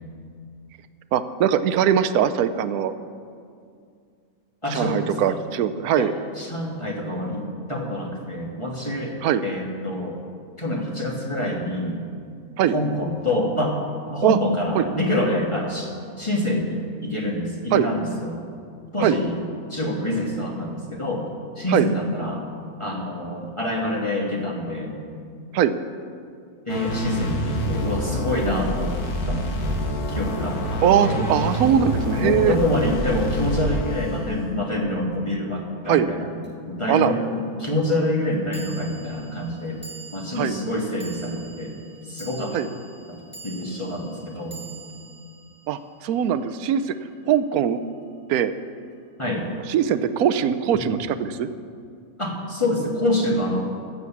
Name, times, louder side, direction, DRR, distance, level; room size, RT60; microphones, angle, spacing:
voice 1, 1.1-2.9 4.7-6.1 9.2-9.4 12.6-12.8 14.2-14.4 14.7-14.9 17.7-17.9 19.0-19.2 21.7-21.9 25.5-25.7 30.8-32.5 35.9-36.1 36.9-37.1 40.3-40.6 42.5-42.7 45.7-46.9 47.3-47.8 48.3-48.5 49.7-51.5, right 9 dB, 85° right, 12 dB, 1.1 m, -21 dB
voice 2, 4.6-5.4 5.9-6.1 6.4-10.2 10.6-12.0 12.7-13.8 14.1-18.4 18.9-19.4 19.7-21.3 21.6-22.4 22.8-24.9 26.7-28.9 29.3-29.6 30.1-31.2 32.2-36.3 36.7-39.8 40.1-41.8 42.1-42.6 43.1-44.6 49.2-49.5 52.2-53.6, left 1 dB, 20° left, -1 dB, 1.4 m, -26 dB
sound 1, 26.7-34.4, equal, 85° left, 1.8 m, -27 dB
sound 2, 36.4-36.5 38.5-47.0, right 3 dB, 10° right, 1.4 m, -45 dB
15.0 x 6.7 x 7.1 m, 2.3 s
omnidirectional pair, 1.6 m